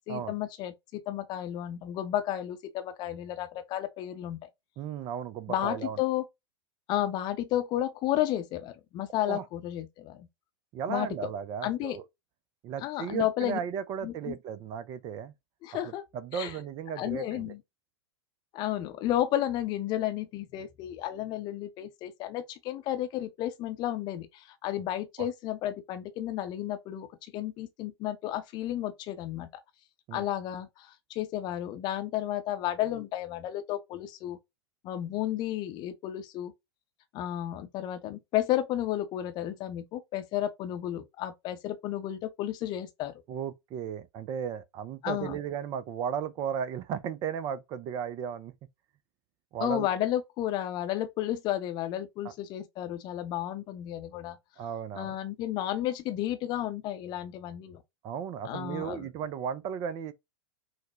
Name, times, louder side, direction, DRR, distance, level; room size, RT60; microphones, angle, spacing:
voice 1, 0.1-4.5 5.5-6.2 6.9-10.3 10.9-11.1 11.6-12.0 12.8-13.6 14.0-14.3 15.6-16.0 16.3-16.5 17.0-17.6 18.5-29.5 30.1-34.4 34.8-36.5 37.1-43.1 45.0-45.4 49.6-54.4 54.9-57.8 58.4-59.1, left 12 dB, 30° left, 0.7 m, -32 dB
voice 2, 4.8-6.0 9.3-9.5 10.7-12.0 12.6-15.3 15.8-17.5 25.2-25.3 30.1-30.2 43.3-48.5 49.5-49.9 52.2-52.3 54.6-55.2 58.0-60.1, right 8 dB, 25° right, 0.4 m, -35 dB
5.7 x 2.1 x 2.9 m
figure-of-eight pair, 95°, 14 cm